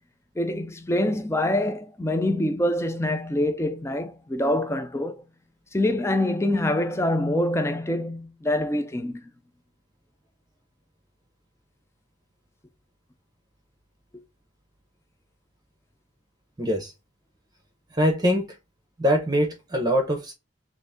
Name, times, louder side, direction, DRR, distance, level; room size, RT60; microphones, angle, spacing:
voice 1, 0.4-5.2 5.7-9.3, left 1 dB, 15° left, 0.4 m, -25 dB
voice 2, 16.6-16.9 17.9-18.5 19.0-20.3, equal, 20° right, 0.8 m, -23 dB
4.0 x 2.6 x 3.5 m
head